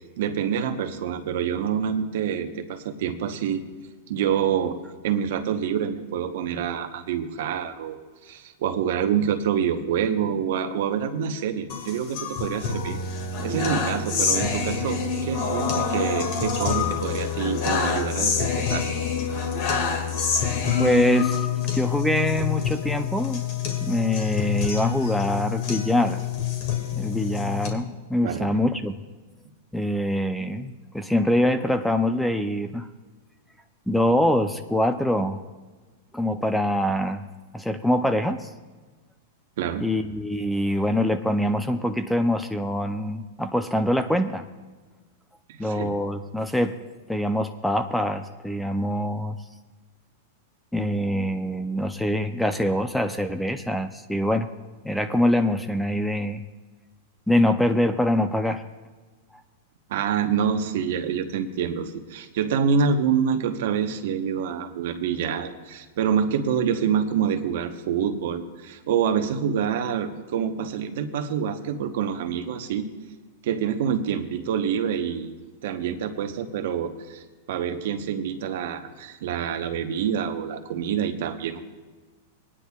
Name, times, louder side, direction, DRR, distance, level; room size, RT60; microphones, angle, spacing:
voice 1, 0.2-3.6 4.1-4.8 5.0-8.0 8.2-13.0 13.4-18.9 28.2-28.5 39.6-39.9 45.5-45.9 59.9-72.9 73.4-75.3 75.6-77.2 77.5-81.7, right 7 dB, 70° right, 7 dB, 1.0 m, -26 dB
sound 1, 11.7-27.7, left 6 dB, 55° left, 2.0 m, -26 dB
voice 2, 20.8-21.5 21.7-23.4 23.8-26.2 26.9-28.9 29.7-32.9 33.9-35.4 36.1-37.2 37.5-38.5 39.8-44.4 45.6-46.8 47.1-49.4 50.7-54.5 54.8-56.4 57.3-58.6, left 1 dB, 5° left, 9 dB, 0.5 m, -24 dB
21.0 x 9.9 x 2.4 m, 1.3 s
hypercardioid pair, 120°, 0 cm